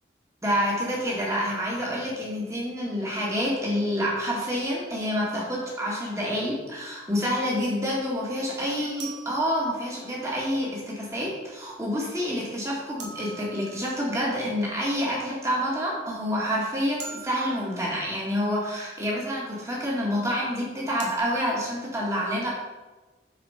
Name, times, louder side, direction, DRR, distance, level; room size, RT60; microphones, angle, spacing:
voice 1, 0.4-22.5, equal, 15° right, -4 dB, 2.0 m, -28 dB
sound 1, 9.0-10.3 13.0-14.4 17.0-18.2 21.0-21.2, right 5 dB, 85° right, 1.6 m, -43 dB
8.5 x 4.5 x 5.7 m, 1.2 s
head